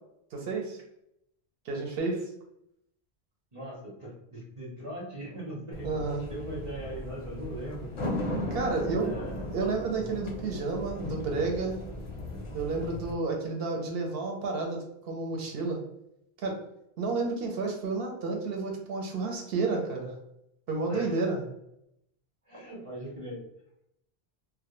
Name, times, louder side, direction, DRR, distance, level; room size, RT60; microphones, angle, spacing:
voice 1, 0.3-0.8 1.7-2.2 5.8-6.2 8.5-9.1 9.5-11.8 12.5-15.8 16.4-16.6 17.0-20.1 20.7-21.4, right 3 dB, 65° right, 1 dB, 0.8 m, -31 dB
voice 2, 3.5-6.0 6.3-7.9 9.0-9.4 20.9-21.2 22.5-23.5, right 1 dB, 35° right, -4 dB, 0.7 m, -40 dB
sound 1, 5.7-13.1, left 1 dB, 45° left, 0.4 m, -37 dB
2.1 x 2.1 x 3.0 m, 0.79 s
omnidirectional pair, 1.1 m